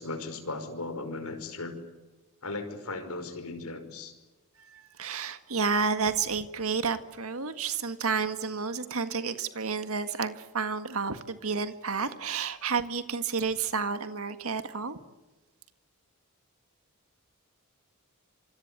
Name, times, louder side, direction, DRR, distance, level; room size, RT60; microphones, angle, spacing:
voice 1, 0.0-1.8 2.4-4.1, left 3 dB, 80° left, 5.3 m, -37 dB
voice 2, 4.6-15.0, right 5 dB, 70° right, 1.8 m, -31 dB
27.0 x 25.0 x 8.3 m
head